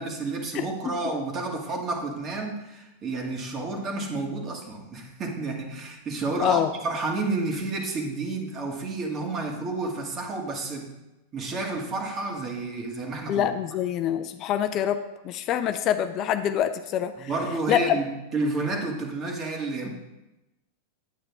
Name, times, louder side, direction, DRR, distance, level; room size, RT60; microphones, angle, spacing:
voice 1, 0.0-10.9 11.3-13.5 17.2-19.9, right 3 dB, 35° right, 1 dB, 2.1 m, -30 dB
voice 2, 13.3-15.0 15.2-17.3 17.7-17.8, left 10 dB, 40° left, 9 dB, 0.5 m, -25 dB
9.3 x 8.7 x 3.5 m, 0.98 s
hypercardioid pair, 95°, 0 cm